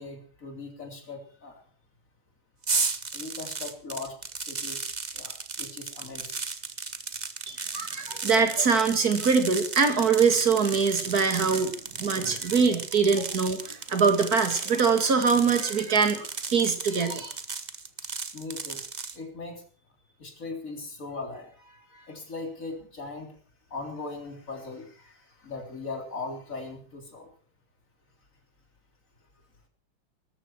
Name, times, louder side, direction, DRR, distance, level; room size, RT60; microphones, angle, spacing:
voice 1, 0.0-1.6 3.1-4.9 5.1-6.5 13.2-13.3 18.0-18.1 18.3-18.8 19.1-19.6 20.2-23.3 23.7-27.3, left 3 dB, 40° left, 3 dB, 3.9 m, -39 dB
sound 1, 2.6-19.2, right 4 dB, 30° right, 0.8 m, -35 dB
voice 2, 7.5-17.4, right 5 dB, 45° right, 7 dB, 2.7 m, -23 dB
19.5 x 14.0 x 4.6 m, 0.42 s
omnidirectional pair, 2.3 m